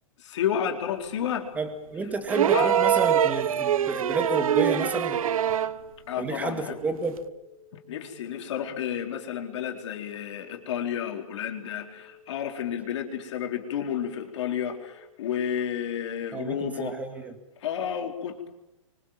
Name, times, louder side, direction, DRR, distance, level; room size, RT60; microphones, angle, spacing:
voice 1, 0.2-1.5 2.5-2.8 5.6-5.7 6.1-6.8 7.7-17.0 17.6-18.5, left 9 dB, 55° left, 3 dB, 4.3 m, -31 dB
voice 2, 1.6-5.2 6.2-7.2 16.3-17.4, right 3 dB, 10° right, 7 dB, 2.3 m, -31 dB
sound 1, 2.3-5.8 7.2-7.3, right 9 dB, 85° right, 1.0 m, -24 dB
sound 2, 4.7-15.0, left 5 dB, 20° left, 3.4 m, -54 dB
29.5 x 25.0 x 7.5 m, 0.93 s
hypercardioid pair, 160°, 18 cm